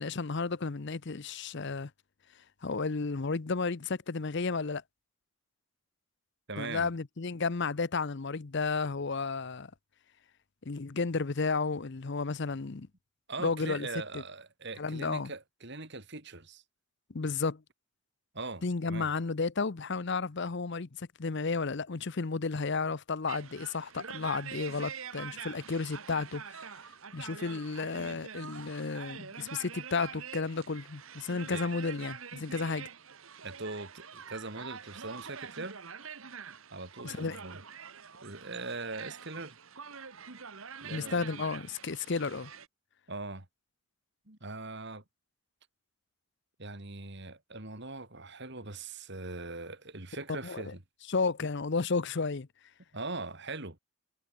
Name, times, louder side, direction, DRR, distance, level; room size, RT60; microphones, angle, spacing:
voice 1, 0.0-1.9 2.6-4.8 6.6-9.7 10.7-12.9 13.4-13.9 14.1-14.2 14.8-15.3 17.1-17.6 18.6-26.6 27.1-32.9 37.0-37.4 40.9-42.5 50.4-50.7 51.1-52.5, left 4 dB, 50° left, 0.7 m, -32 dB
voice 2, 6.5-6.9 13.3-16.6 18.3-19.1 31.5-31.7 33.4-35.8 36.7-37.6 38.2-39.6 40.8-41.3 43.1-43.5 44.3-45.0 46.6-50.8 52.9-53.8, right 3 dB, 50° right, 2.8 m, -41 dB
sound 1, 23.3-42.7, right 6 dB, 70° right, 1.6 m, -45 dB
head